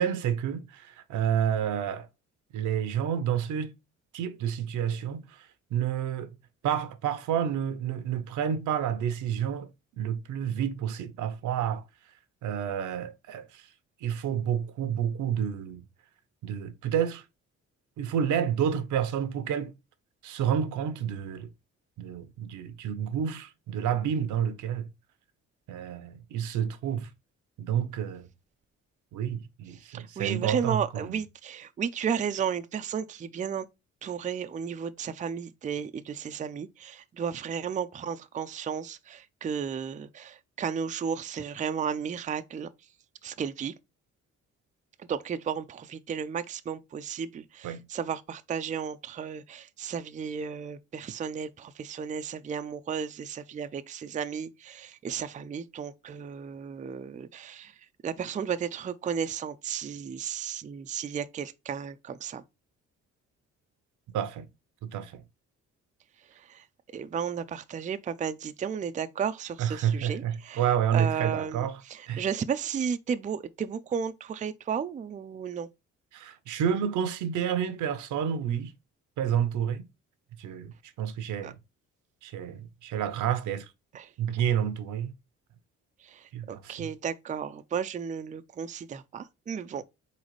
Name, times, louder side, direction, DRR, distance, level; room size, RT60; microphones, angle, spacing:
voice 1, 0.0-2.1 2.5-3.7 4.1-6.3 6.6-9.7 10.0-11.8 12.4-13.7 14.0-15.8 16.4-17.2 18.0-19.7 20.2-21.5 22.0-24.9 25.7-27.1 27.6-28.3 29.1-31.1 47.6-47.8 64.1-64.5 64.8-65.2 69.6-71.8 72.1-72.3 76.1-78.7 79.2-79.9 80.4-81.6 82.2-83.7 84.2-85.1 86.3-86.9, right 9 dB, 80° right, 0.8 m, -29 dB
voice 2, 29.7-33.7 34.0-42.7 43.2-43.7 45.0-62.4 66.2-66.7 66.9-75.7 81.4-81.5 83.9-84.1 86.0-89.8, right 7 dB, 25° right, 0.4 m, -34 dB
4.1 x 4.0 x 3.1 m
cardioid pair, 90°, 30 cm